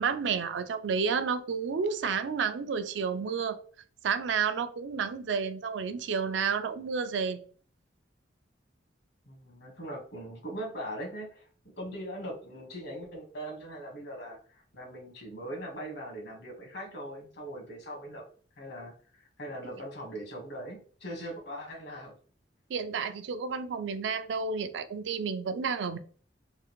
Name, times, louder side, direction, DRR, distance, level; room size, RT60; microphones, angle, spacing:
voice 1, 0.0-3.6 4.0-7.4 22.7-26.0, right 6 dB, 70° right, 0.4 m, -31 dB
voice 2, 9.3-11.4 11.8-18.2 18.6-22.2, equal, 65° left, 1.3 m, -40 dB
3.7 x 2.4 x 3.0 m
head